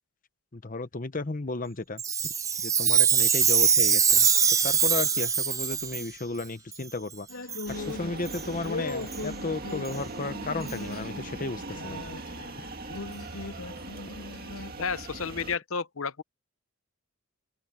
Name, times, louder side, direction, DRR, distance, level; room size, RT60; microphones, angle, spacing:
voice 1, 0.5-2.3 2.6-4.3 4.6-7.3 7.7-12.0, left 3 dB, 40° left, 0.9 m, -34 dB
Chime, 2.0-6.1 6.7-6.8 7.5-7.7 8.2-8.4 9.1-9.2 9.8-9.9 10.7-10.8, right 7 dB, 15° right, 0.4 m, -23 dB
sound 1, 7.3-14.7, left 3 dB, 85° left, 3.2 m, -40 dB
sound 2, 7.7-15.6, right 2 dB, 45° right, 2.1 m, -40 dB
voice 2, 14.8-16.2, left 5 dB, 70° left, 0.8 m, -31 dB
open air
head